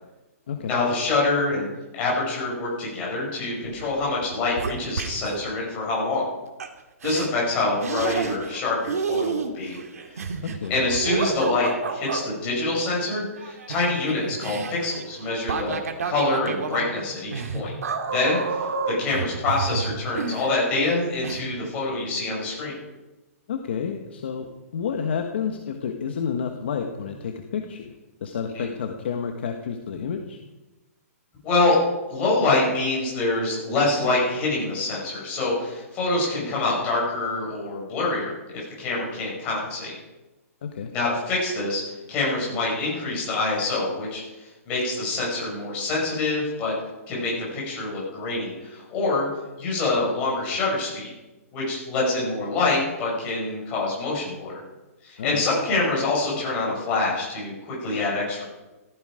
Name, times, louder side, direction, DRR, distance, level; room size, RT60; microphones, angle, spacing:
voice 1, 0.7-6.2 7.0-9.8 10.1-10.2 10.7-15.8 16.0-17.7 18.1-22.7 28.5-28.7 31.4-31.8 32.1-38.3 38.8-39.9 40.9-41.8 42.1-44.2 44.7-46.7 47.1-49.3 49.6-51.1 51.5-54.5 55.0-58.4, left 2 dB, 15° left, -5 dB, 5.9 m, -25 dB
sound 1, 3.7-3.9 4.2-5.4 6.6-6.7 7.0-7.3 7.8-8.6 8.9-12.2 13.4-20.9 21.2-21.4, right 5 dB, 75° right, 2.2 m, -30 dB
voice 2, 10.4-10.8 23.5-27.9 28.2-30.4 40.6-40.9 55.2-55.5, left 7 dB, 45° left, 4 dB, 1.3 m, -30 dB
15.5 x 14.5 x 5.0 m, 1.1 s
hypercardioid pair, 180°, 8 cm